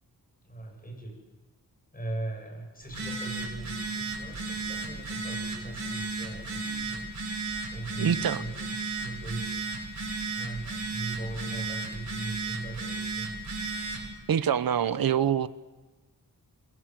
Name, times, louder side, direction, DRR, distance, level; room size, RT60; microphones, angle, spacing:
voice 1, 0.4-1.2 1.9-7.0 7.7-9.6 10.3-13.3, right 2 dB, 25° left, 3 dB, 7.7 m, -39 dB
Telephone, 2.8-14.1, right 3 dB, 55° right, 7.7 m, -34 dB
voice 2, 8.0-8.4 14.3-15.5, right 8 dB, 70° right, 14 dB, 1.1 m, -25 dB
27.5 x 22.5 x 7.7 m, 1.2 s
wide cardioid pair, 130°, 37 cm